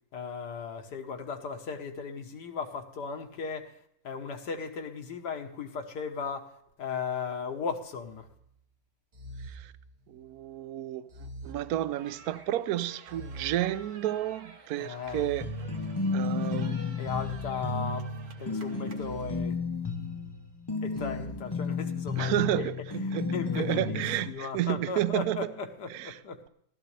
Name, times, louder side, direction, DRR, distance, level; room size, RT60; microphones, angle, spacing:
voice 1, 0.1-3.8 4.0-6.5 6.8-8.3 14.8-15.3 17.0-18.1 18.4-19.9 20.8-22.7 23.0-26.4, left 5 dB, 70° left, 1.7 m, -36 dB
sound 1, 8.0-8.5 9.1-10.4 11.1-12.4 13.1-14.4 15.0-16.3 17.0-18.3 19.0-20.3 20.9-21.3, right 1 dB, 35° right, 0.9 m, -46 dB
voice 2, 10.1-11.1 11.4-15.5 16.1-17.0 22.2-25.5 25.9-26.2, right 13 dB, 70° right, 1.0 m, -31 dB
sound 2, 12.0-19.3, right 5 dB, 50° right, 1.3 m, -52 dB
sound 3, 15.4-24.3, left 4 dB, 25° left, 0.5 m, -33 dB
15.0 x 12.5 x 3.2 m
omnidirectional pair, 1.9 m